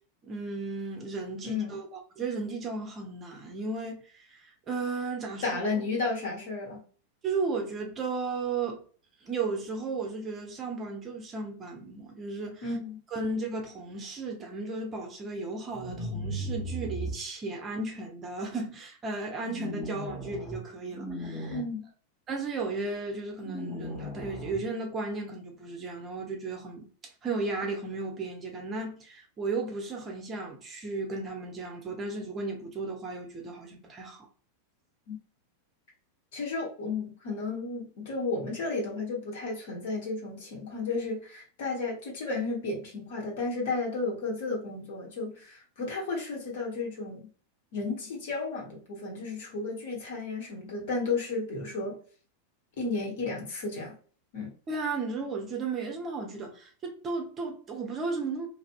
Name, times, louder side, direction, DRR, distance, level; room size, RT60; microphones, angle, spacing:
voice 1, 0.2-5.8 7.2-8.8 9.2-12.7 13.1-21.6 22.3-26.9 27.2-34.3 54.7-58.5, right 3 dB, 25° right, 0.7 m, -35 dB
voice 2, 1.4-1.7 5.4-6.8 12.6-13.0 21.5-21.9 35.1-35.2 36.3-47.3 47.7-52.0 52.8-54.0 54.3-54.5, left 3 dB, 55° left, 1.0 m, -33 dB
sound 1, 15.7-17.1 19.5-20.6 20.9-21.6 23.4-24.6, equal, ahead, 1.0 m, -36 dB
2.5 x 2.0 x 2.5 m
figure-of-eight pair, 90°, 0 cm